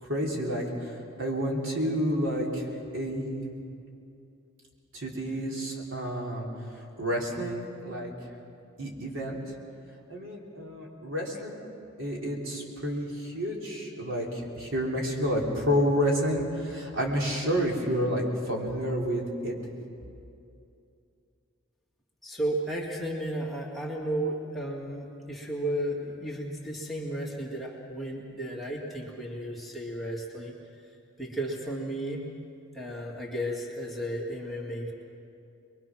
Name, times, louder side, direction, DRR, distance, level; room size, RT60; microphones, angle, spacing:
voice 1, 0.0-2.7 2.9-3.5 4.9-6.5 7.0-8.1 8.8-9.4 10.1-11.6 12.0-19.6, equal, 75° right, -2 dB, 3.5 m, -30 dB
voice 2, 22.2-30.6 31.2-32.2 32.7-34.9, right 1 dB, ahead, -5 dB, 2.4 m, -33 dB
24.5 x 22.5 x 6.1 m, 2.6 s
head